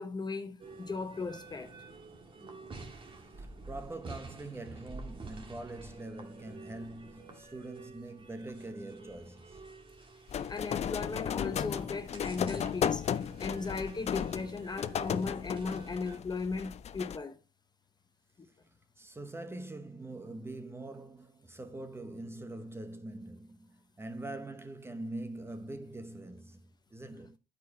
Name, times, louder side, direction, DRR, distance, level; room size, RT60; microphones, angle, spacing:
voice 1, 0.0-1.7 10.5-17.4 18.4-18.5, left 4 dB, 25° left, 0.9 m, -37 dB
sound 1, 0.6-16.2, right 3 dB, 30° right, 1.8 m, -50 dB
voice 2, 3.4-9.7 19.0-27.4, right 2 dB, 15° right, 0.9 m, -43 dB
sound 2, 10.3-17.2, left 8 dB, 40° left, 0.5 m, -35 dB
9.1 x 5.1 x 4.9 m
cardioid pair, 110°, 17 cm